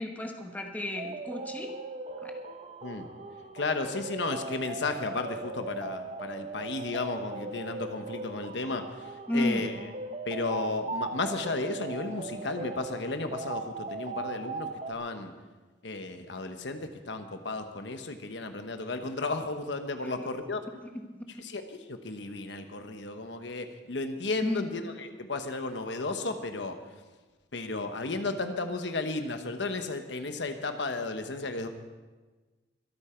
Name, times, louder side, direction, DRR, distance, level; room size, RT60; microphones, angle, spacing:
voice 1, 0.0-1.7 2.2-2.3 9.3-9.6 20.8-21.2 24.4-24.6, left 1 dB, 10° left, 2 dB, 1.2 m, -32 dB
sound 1, 1.0-14.9, right 3 dB, 35° right, 0.8 m, -39 dB
voice 2, 3.5-9.9 10.3-15.3 15.8-20.6 21.3-26.8 27.5-31.7, left 3 dB, 75° left, 7 dB, 1.1 m, -34 dB
23.0 x 8.8 x 4.5 m, 1.3 s
head